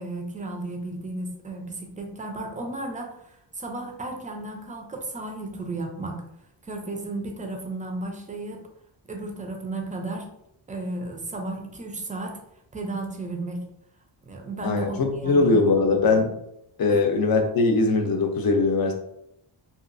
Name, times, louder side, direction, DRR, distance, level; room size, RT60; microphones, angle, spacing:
voice 1, 0.0-6.2 6.6-8.7 9.1-10.3 10.7-12.4 12.7-13.7 14.3-15.7 16.9-17.0, right 2 dB, 20° right, 2 dB, 0.3 m, -34 dB
voice 2, 14.6-16.3 16.8-18.9, left 3 dB, 50° left, 4 dB, 0.5 m, -21 dB
2.8 x 2.3 x 2.4 m, 0.79 s
wide cardioid pair, 130°, 47 cm